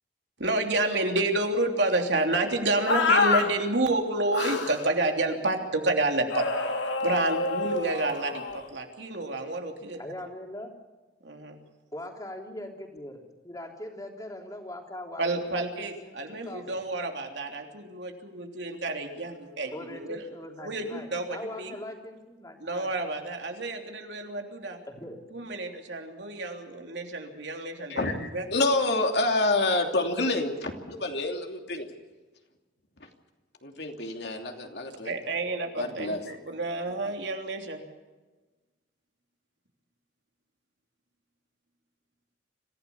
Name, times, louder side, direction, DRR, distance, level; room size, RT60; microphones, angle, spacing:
voice 1, 0.4-6.5 7.0-8.4 8.7-10.0 11.2-11.6 15.2-20.2 20.6-21.7 22.6-24.8 25.3-28.5 35.0-37.8, right 2 dB, 75° right, 3 dB, 3.2 m, -29 dB
sound 1, 2.9-3.5 4.3-4.8 6.3-8.6, left 4 dB, 85° left, 3.1 m, -27 dB
voice 2, 10.0-10.7 11.9-13.2 13.4-16.8 19.7-22.9 24.9-25.2, left 1 dB, 20° left, 2 dB, 3.5 m, -41 dB
voice 3, 27.9-31.9 33.6-35.1 35.8-36.3, left 2 dB, 65° left, 3 dB, 3.0 m, -28 dB
26.0 x 16.0 x 7.1 m, 1.2 s
head